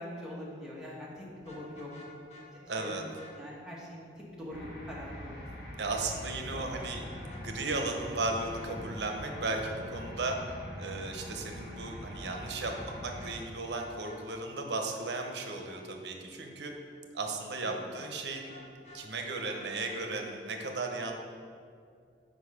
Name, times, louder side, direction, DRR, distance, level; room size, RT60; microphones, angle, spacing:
voice 1, 0.0-1.9 2.7-2.9 3.3-4.0 4.3-5.3 5.6-5.8 6.5-6.9, left 1 dB, 5° right, -6 dB, 1.2 m, -43 dB
Vehicle horn car horn honking, 1.4-2.5 2.8-3.3 6.8-7.4 7.7-7.8 8.2-8.7 12.1-12.9 13.2-13.3 13.7-14.2 17.9-19.0 19.4-20.0, left 2 dB, 40° left, 1.2 m, -51 dB
voice 2, 2.7-3.0 5.8-16.7 17.1-18.5 18.9-21.2, right 3 dB, 75° right, 3 dB, 0.7 m, -35 dB
sound 1, 4.5-13.3, equal, 60° left, 1.7 m, -43 dB
6.3 x 5.2 x 4.9 m, 2.3 s
head